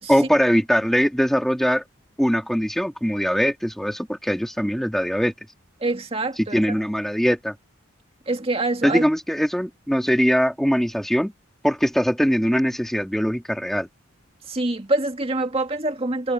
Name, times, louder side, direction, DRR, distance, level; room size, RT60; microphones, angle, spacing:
voice 1, 0.1-1.8 2.2-5.3 6.5-7.5 8.8-11.3 11.6-13.9, equal, ahead, 2.6 m, -21 dB
voice 2, 5.8-6.8 8.3-9.0 14.5-16.3, right 2 dB, 30° right, 2.2 m, -25 dB
head